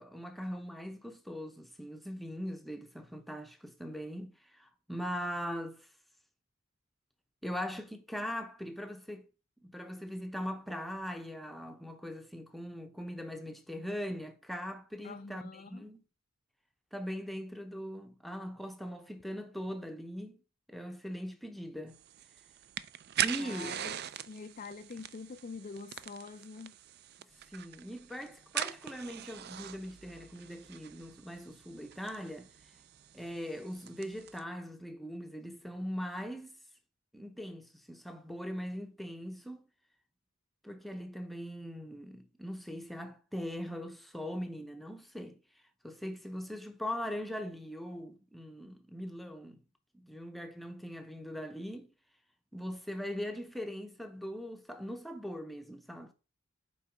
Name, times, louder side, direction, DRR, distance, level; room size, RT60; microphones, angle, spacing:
voice 1, 0.0-5.9 7.4-9.3 9.6-16.0 16.9-20.4 20.7-22.0 23.2-23.7 27.5-32.5 33.1-36.6 37.1-39.6 40.6-45.4 45.8-49.6 49.9-51.9 52.5-56.1, equal, ahead, 0.7 m, -41 dB
voice 2, 15.0-15.9 23.4-23.9 24.3-26.8, left 4 dB, 35° left, 0.4 m, -45 dB
sound 1, 21.9-34.4, right 10 dB, 45° right, 0.4 m, -42 dB
7.2 x 4.6 x 5.0 m
head